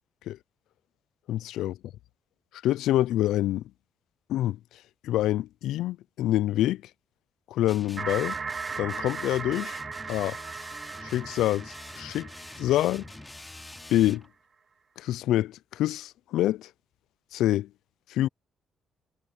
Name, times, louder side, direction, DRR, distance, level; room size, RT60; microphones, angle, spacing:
voice 1, 1.3-1.8 2.6-3.6 4.3-4.6 5.0-6.8 7.5-8.4 8.8-9.8 10.1-10.4 11.0-12.3 12.6-13.0 13.9-14.3 15.0-16.7 17.3-17.7 18.1-18.3, left 14 dB, 85° left, 0.4 m, -26 dB
sound 1, 7.7-14.3, left 2 dB, 15° left, 2.9 m, -45 dB
sound 2, 8.0-13.7, right 5 dB, 40° right, 0.8 m, -37 dB
cardioid pair, 90°, 0 cm